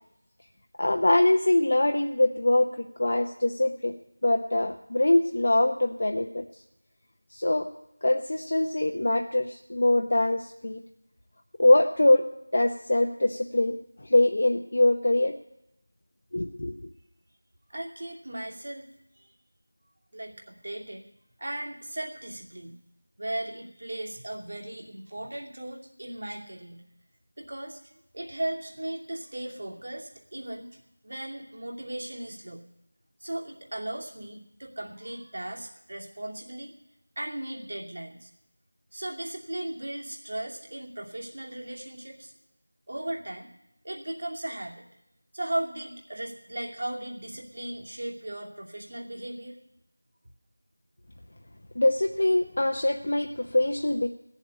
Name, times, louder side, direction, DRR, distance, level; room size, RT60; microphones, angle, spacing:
voice 1, 0.8-3.9 4.2-6.4 7.3-7.7 8.0-10.8 11.6-12.2 12.5-15.3 16.3-16.8 51.7-54.1, left 1 dB, 45° left, 4 dB, 0.8 m, -23 dB
voice 2, 17.7-18.9 19.1-19.3 20.1-21.1 21.4-22.8 23.2-26.8 27.4-32.6 33.2-36.7 37.2-38.3 38.9-42.3 42.9-43.5 43.8-44.8 45.3-49.6, right 1 dB, 50° right, 0 dB, 2.5 m, -37 dB
16.5 x 7.3 x 9.9 m, 0.81 s
figure-of-eight pair, 180°, 0 cm